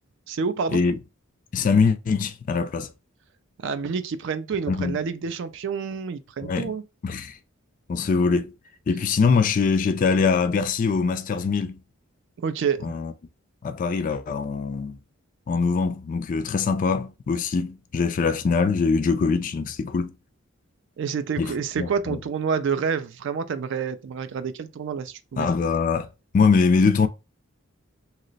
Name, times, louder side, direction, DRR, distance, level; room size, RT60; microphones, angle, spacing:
voice 1, 0.3-0.8 3.6-6.8 12.4-12.9 21.0-25.5, right 6 dB, 60° right, 0.3 m, -28 dB
voice 2, 1.5-2.9 4.7-5.0 6.4-6.7 7.0-7.4 7.9-8.5 8.9-11.8 12.8-13.1 13.6-15.0 15.5-20.1 21.4-21.5 21.8-22.2 25.4-26.1 26.3-27.1, left 5 dB, 40° left, 0.3 m, -23 dB
2.8 x 2.0 x 3.9 m
head